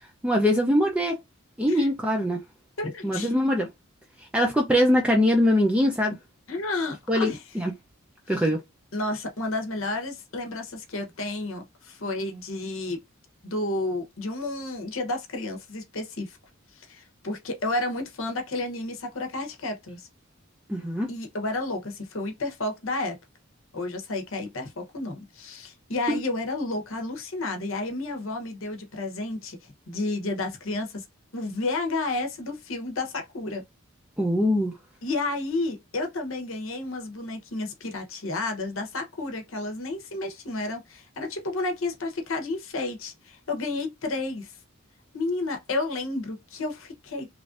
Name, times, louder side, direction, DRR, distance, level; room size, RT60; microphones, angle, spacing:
voice 1, 0.2-1.2 1.6-2.4 3.0-3.7 4.2-6.2 7.1-7.7 8.3-8.6 20.7-21.1 26.1-26.2 34.2-34.7, equal, 5° right, 0.5 m, -22 dB
voice 2, 2.8-3.3 6.5-7.4 8.3-8.4 8.9-13.0 13.4-16.4 16.8-20.1 21.1-23.2 23.7-29.6 29.9-31.0 31.3-33.6 35.0-44.5 45.1-47.3, left 2 dB, 75° left, 0.9 m, -31 dB
3.2 x 2.5 x 2.4 m
head